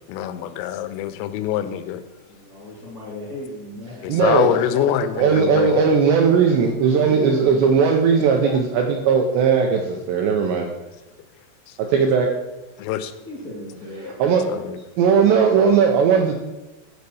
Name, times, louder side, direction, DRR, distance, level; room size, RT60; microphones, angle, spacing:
voice 1, 0.1-2.0 4.0-5.8 12.8-13.1 14.5-14.8, left 11 dB, 90° left, 11 dB, 3.2 m, -24 dB
voice 2, 2.3-4.1 6.9-7.9 11.9-12.0 13.2-14.4, left 1 dB, 55° left, -6 dB, 0.9 m, -36 dB
voice 3, 4.1-4.8 5.2-10.7 11.8-12.3 14.2-14.4 15.0-16.4, right 6 dB, 85° right, 2 dB, 2.5 m, -18 dB
9.4 x 4.6 x 6.8 m, 1.1 s
omnidirectional pair, 5.7 m